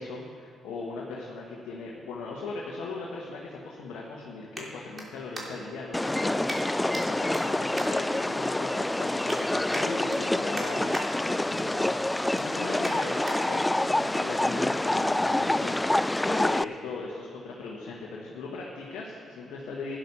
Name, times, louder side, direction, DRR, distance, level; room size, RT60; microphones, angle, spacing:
voice 1, 0.0-20.0, left 3 dB, 75° left, -3 dB, 1.4 m, -39 dB
sound 1, 4.5-5.8 6.5-7.0 7.3-8.6 9.0-9.4 9.7-11.1 11.5-11.7 12.1-13.4 13.9-14.0, right 1 dB, 35° right, 3.1 m, -41 dB
sound 2, 5.9-16.6, left 1 dB, 15° left, 0.3 m, -27 dB
12.0 x 10.5 x 5.6 m, 2.6 s
hypercardioid pair, 50°, 0 cm